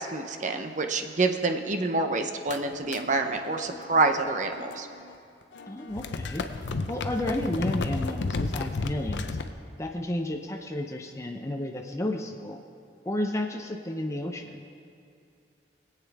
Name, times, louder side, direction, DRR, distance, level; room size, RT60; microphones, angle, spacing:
voice 1, 0.0-4.9, right 3 dB, 45° right, 6 dB, 0.7 m, -27 dB
sound 1, 2.5-5.2 5.4-9.5, left 3 dB, 80° left, 0.6 m, -33 dB
voice 2, 5.7-6.4 6.9-9.3 9.8-12.6 13.1-14.6, left 1 dB, 15° left, 2 dB, 0.5 m, -32 dB
20.0 x 8.3 x 3.5 m, 2.5 s
head